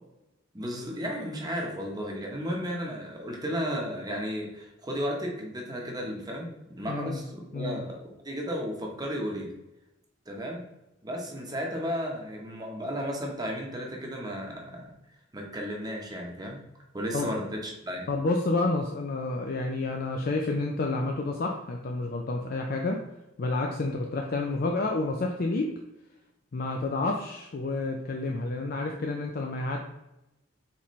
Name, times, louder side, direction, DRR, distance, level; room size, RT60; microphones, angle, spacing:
voice 1, 0.5-9.5 10.3-10.6 11.0-14.9 15.3-16.6 16.9-18.1, equal, 20° right, 0 dB, 0.9 m, -34 dB
voice 2, 6.9-7.2 7.5-7.8 17.1-17.3 18.1-23.0 23.4-25.7 26.5-29.8, left 2 dB, 50° left, 2 dB, 0.4 m, -29 dB
4.1 x 4.1 x 3.1 m, 0.93 s
head